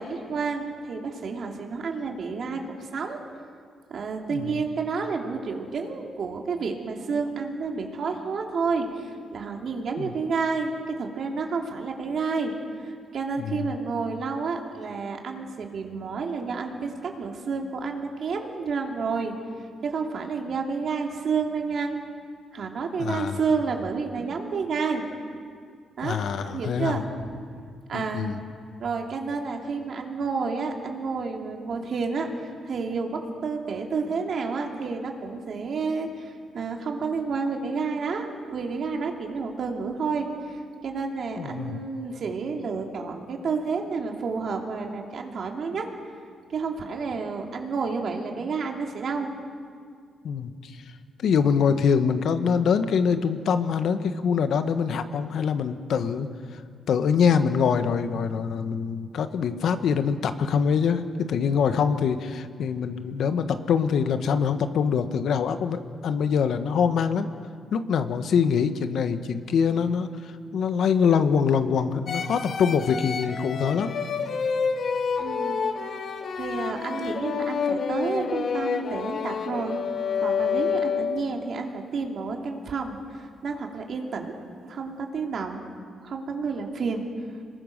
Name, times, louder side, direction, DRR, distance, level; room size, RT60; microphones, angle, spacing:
voice 1, 0.0-3.2 3.9-12.5 12.8-19.4 19.8-22.0 22.5-25.0 26.0-26.2 26.5-27.3 27.9-28.3 28.8-45.8 46.5-49.3 75.2-75.6 76.4-79.8 80.2-84.4 84.7-85.6 86.0-87.1, right 4 dB, 50° right, 2 dB, 2.8 m, -30 dB
voice 2, 4.3-4.6 10.0-10.1 13.4-13.7 23.0-23.4 26.0-27.0 27.9-28.4 41.4-41.8 50.2-50.8 51.2-56.6 56.9-67.3 67.7-73.9, left 6 dB, 65° left, 9 dB, 1.3 m, -24 dB
sound 1, 72.1-81.4, left 6 dB, 45° left, 1.2 m, -28 dB
26.5 x 22.0 x 6.6 m, 2.1 s
cardioid pair, 140°, 0 cm